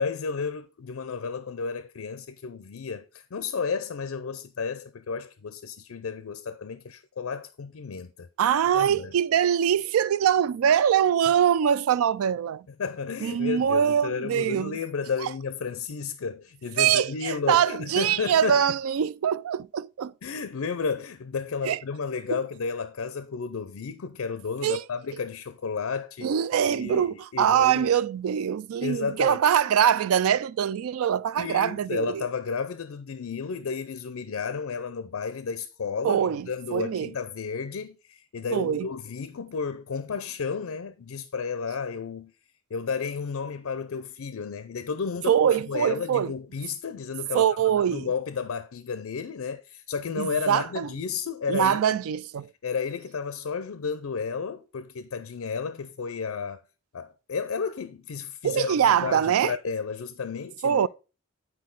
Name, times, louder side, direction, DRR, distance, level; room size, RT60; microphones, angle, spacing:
voice 1, 0.0-8.3 8.7-9.1 12.8-18.6 20.2-26.3 26.7-27.9 28.8-29.4 31.4-42.3 42.7-45.4 45.7-47.5 47.9-52.0 52.6-56.6 56.9-60.9, left 5 dB, 80° left, 0.5 m, -32 dB
voice 2, 8.4-12.6 13.2-14.8 15.2-15.3 16.8-20.1 21.6-21.8 22.3-22.4 24.6-24.8 26.2-32.2 36.0-37.1 38.5-38.9 45.3-46.3 47.3-48.1 50.2-50.9 51.5-52.5 58.4-59.5 60.6-60.9, right 9 dB, 85° right, 0.3 m, -23 dB
8.5 x 4.6 x 3.8 m
head